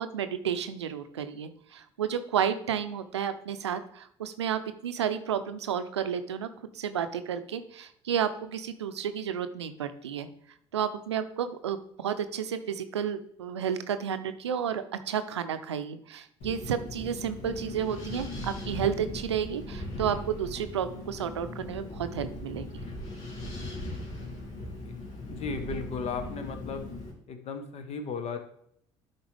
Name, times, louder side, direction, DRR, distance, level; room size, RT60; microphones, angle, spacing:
voice 1, 0.0-6.5 6.7-10.3 10.7-22.7, right 8 dB, 90° right, 11 dB, 0.5 m, -31 dB
Wind, 16.4-27.1, left 1 dB, 65° left, 2.8 m, -39 dB
voice 2, 25.3-26.9 27.3-28.4, left 5 dB, 50° left, 8 dB, 1.2 m, -35 dB
11.5 x 4.4 x 3.4 m, 0.68 s
hypercardioid pair, 60°, 14 cm